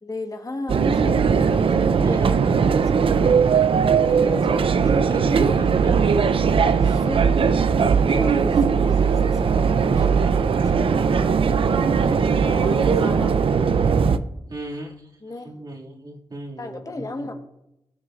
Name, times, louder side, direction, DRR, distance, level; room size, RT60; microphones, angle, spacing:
voice 1, 0.0-2.3 2.6-5.7 6.6-7.5 7.8-11.4 12.2-13.5 15.2-15.5 16.6-17.4, left 2 dB, 35° left, 5 dB, 1.3 m, -36 dB
sound 1, 0.7-14.2, right 6 dB, 60° right, 0.5 m, -19 dB
voice 2, 2.0-2.4 5.1-5.4 5.8-5.9 11.9-13.6 14.5-14.9 15.4-17.3, right 1 dB, 40° right, -2 dB, 2.2 m, -37 dB
18.5 x 6.2 x 2.5 m, 0.87 s
supercardioid pair, 45°, 11 cm